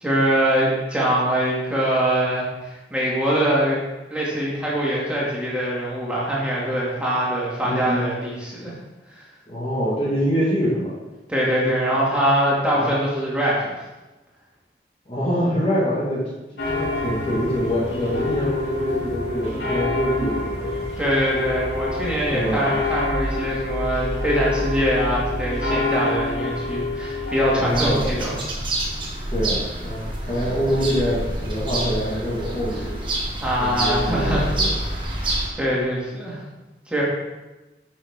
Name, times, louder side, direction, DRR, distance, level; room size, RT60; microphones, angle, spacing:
voice 1, 0.0-3.8 4.1-8.7 9.2-9.3 11.3-13.8 21.0-28.4 33.4-34.5 35.5-36.4 36.9-37.0, equal, 5° right, -7 dB, 2.3 m, -23 dB
voice 2, 7.6-8.0 9.5-11.0 12.7-12.9 15.1-16.2 16.7-20.7 22.2-22.8 27.6-28.1 29.3-33.0 33.6-34.8, equal, 30° left, -5 dB, 1.7 m, -25 dB
church bells big, 16.6-28.0, left 2 dB, 85° left, 2.5 m, -27 dB
sound 1, 27.7-35.5, right 1 dB, 30° right, 1.5 m, -27 dB
10.5 x 6.2 x 3.7 m, 1.1 s
head